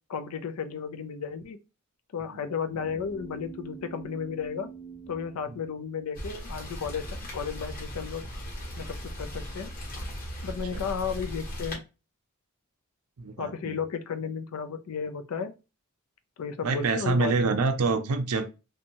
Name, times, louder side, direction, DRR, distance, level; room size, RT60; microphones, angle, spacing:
voice 1, 0.1-1.6 2.1-4.7 5.1-7.1 7.3-8.2 8.8-9.7 10.4-11.8 13.4-15.5 16.4-17.3, left 6 dB, 85° left, 0.4 m, -33 dB
sound 1, 2.7-6.4, right 5 dB, 20° left, 0.6 m, -46 dB
Rain, 6.1-11.7, equal, 40° left, 0.9 m, -37 dB
voice 2, 13.2-13.8 16.6-18.5, right 3 dB, 85° right, 0.5 m, -26 dB
2.6 x 2.2 x 2.9 m
head